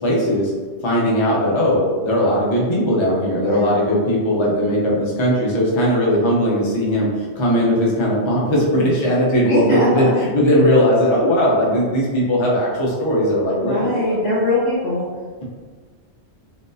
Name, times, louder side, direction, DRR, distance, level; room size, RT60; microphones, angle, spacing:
voice 1, 0.0-0.5 0.8-7.1 7.4-14.2, equal, 35° left, -4 dB, 0.5 m, -18 dB
voice 2, 3.3-3.9 9.5-10.1 13.5-15.1, left 1 dB, 80° left, -11 dB, 1.2 m, -22 dB
3.5 x 2.3 x 2.6 m, 1.5 s
omnidirectional pair, 1.2 m